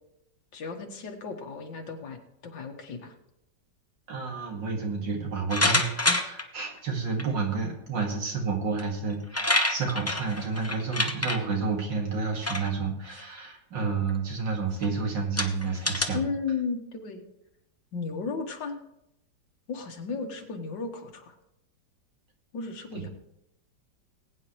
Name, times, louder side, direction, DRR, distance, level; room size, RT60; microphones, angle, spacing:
voice 1, 0.5-3.1 16.1-17.2 17.9-18.8 19.7-21.3 22.5-23.1, left 4 dB, 85° left, 3 dB, 2.2 m, -34 dB
voice 2, 4.1-16.2 22.9-23.1, right 4 dB, 85° right, 0 dB, 2.9 m, -30 dB
sound 1, 5.5-6.4 7.2-7.3 8.8-8.9 9.1-11.4 12.3-12.7 13.1-13.4 14.1-14.2 14.8-14.9 15.4-16.0, left 1 dB, 15° left, 0.4 m, -26 dB
20.0 x 9.3 x 3.1 m, 0.83 s
omnidirectional pair, 1.9 m